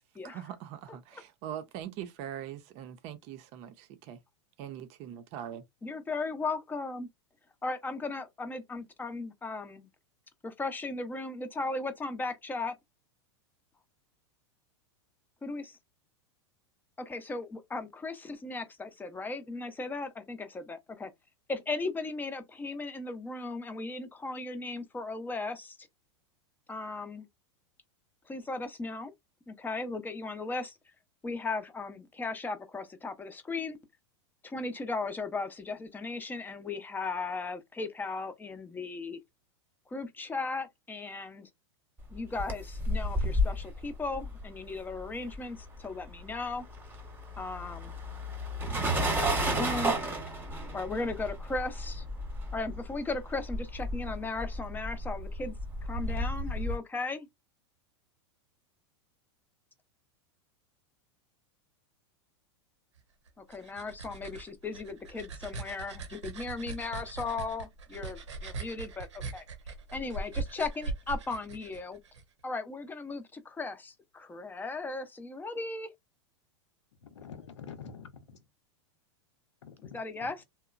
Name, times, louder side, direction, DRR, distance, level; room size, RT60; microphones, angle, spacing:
voice 1, 0.2-4.2 4.6-5.6, right 10 dB, 45° right, 0.6 m, -42 dB
voice 2, 5.8-7.1 7.6-9.9 10.4-12.7 15.4-15.6 17.0-21.1 21.5-25.8 26.7-27.3 28.3-29.1 29.5-30.8 31.2-33.8 34.4-39.2 39.9-41.5 42.1-46.6 47.4-47.9 48.8-49.9 50.7-52.0 52.5-55.5 55.8-57.3 63.4-69.1 69.3-69.5 69.9-72.0 72.4-75.9 79.8-80.4, left 3 dB, 15° left, 0.5 m, -36 dB
sound 1, 42.1-45.8 46.0-56.8, equal, 15° right, 0.9 m, -33 dB
sound 2, 63.3-72.2, right 3 dB, 85° right, 0.8 m, -40 dB
voice 3, 77.0-78.4 79.6-80.3, left 6 dB, 85° left, 0.7 m, -47 dB
2.8 x 2.1 x 2.4 m
hypercardioid pair, 105°, 15 cm